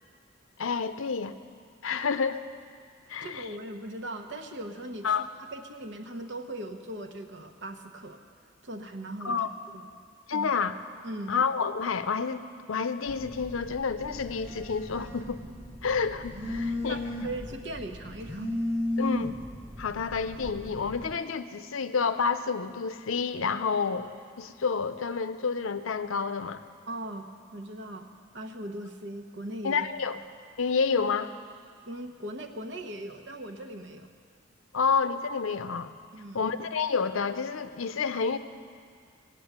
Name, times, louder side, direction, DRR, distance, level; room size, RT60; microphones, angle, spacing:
voice 1, 0.6-1.4 1.8-2.4 3.1-3.5 5.0-5.3 9.2-9.5 10.3-10.8 11.3-12.4 12.7-15.4 15.8-17.0 19.0-19.3 19.8-24.1 24.4-26.6 29.6-30.2 30.6-31.3 34.7-35.9 36.3-38.4, left 5 dB, 80° left, 11 dB, 0.6 m, -29 dB
voice 2, 3.2-5.2 5.5-8.2 8.6-9.4 9.7-9.9 10.3-10.5 11.0-11.4 16.6-18.5 26.9-27.3 27.5-28.1 28.3-29.9 31.8-34.1 36.1-36.4, right 1 dB, 60° right, 4 dB, 1.1 m, -39 dB
Telephone, 13.1-21.1, left 1 dB, 10° right, 1.1 m, -35 dB
18.0 x 8.6 x 8.0 m, 2.1 s
head